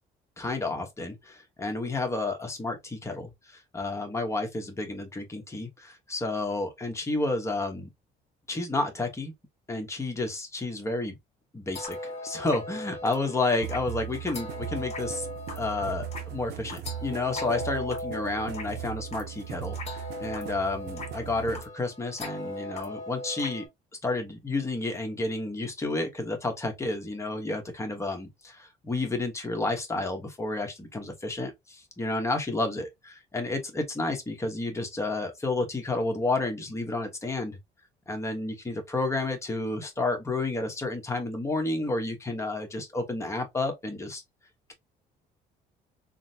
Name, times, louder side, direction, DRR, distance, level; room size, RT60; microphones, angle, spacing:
voice 1, 0.4-7.9 8.5-9.3 9.7-11.2 11.5-15.3 15.6-23.6 24.0-37.6 38.1-44.2, left 2 dB, 15° left, 1.0 m, -31 dB
sound 1, 11.7-23.7, left 2 dB, 40° left, 1.5 m, -39 dB
sound 2, 13.6-21.7, right 11 dB, 75° right, 0.5 m, -38 dB
3.8 x 2.1 x 2.7 m
cardioid pair, 110°, 17 cm